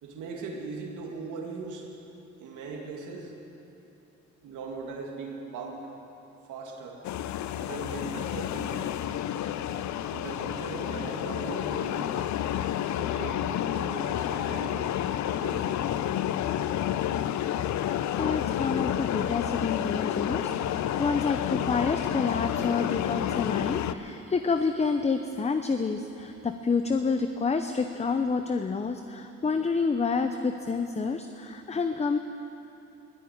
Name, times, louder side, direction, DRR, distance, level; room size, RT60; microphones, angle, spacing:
voice 1, 0.0-1.9 2.4-3.3 4.4-5.8 6.5-7.0 7.6-9.0 9.9-12.4 13.0-14.9 15.3-16.2, right 4 dB, 85° right, 1 dB, 2.3 m, -39 dB
sound 1, 7.0-23.9, left 11 dB, 70° left, 0.6 m, -30 dB
voice 2, 18.1-32.2, left 4 dB, 20° left, 7 dB, 0.7 m, -28 dB
21.0 x 6.9 x 9.4 m, 3.0 s
cardioid pair, 90°, 30 cm